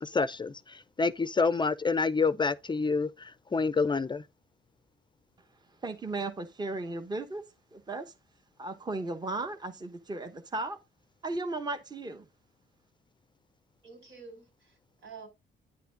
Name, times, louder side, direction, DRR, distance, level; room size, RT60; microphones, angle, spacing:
voice 1, 0.0-4.2, left 4 dB, 25° left, 0.5 m, -28 dB
voice 2, 5.8-7.4 7.7-8.0 8.6-10.8 11.2-12.2, right 2 dB, 20° right, 0.9 m, -35 dB
voice 3, 13.8-15.3, right 5 dB, 80° right, 4.9 m, -49 dB
9.6 x 5.8 x 3.8 m
cardioid pair, 90°, 20 cm